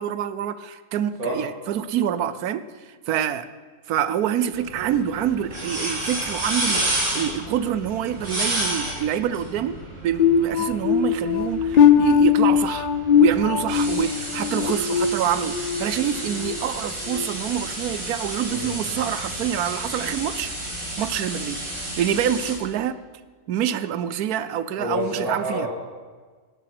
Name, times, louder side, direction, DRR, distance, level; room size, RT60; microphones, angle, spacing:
voice 1, 0.0-2.6 3.1-3.5 3.9-12.9 13.2-20.5 21.0-21.6 22.0-23.0 23.5-25.7, right 9 dB, 90° right, 14 dB, 1.2 m, -26 dB
sound 1, 4.5-22.6, right 1 dB, 55° right, 3.3 m, -31 dB
sound 2, 10.2-15.8 16.3-16.6 17.1-17.3, left 8 dB, 75° left, 0.4 m, -20 dB
voice 2, 18.5-19.0 24.8-25.7, equal, 75° right, -6 dB, 2.8 m, -28 dB
18.0 x 8.3 x 6.0 m, 1.5 s
omnidirectional pair, 1.5 m